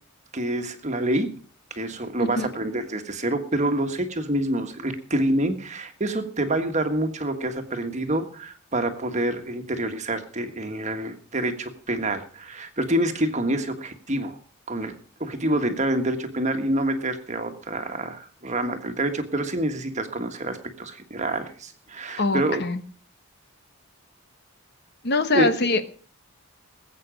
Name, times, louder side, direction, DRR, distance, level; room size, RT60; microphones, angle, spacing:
voice 1, 0.3-1.3 1.7-14.4 14.7-14.9 15.2-22.6 25.3-25.5, right 1 dB, 35° right, 6 dB, 1.5 m, -27 dB
voice 2, 22.2-22.8 25.0-25.8, left 3 dB, 50° left, 10 dB, 1.1 m, -23 dB
19.5 x 8.3 x 5.1 m, 0.42 s
head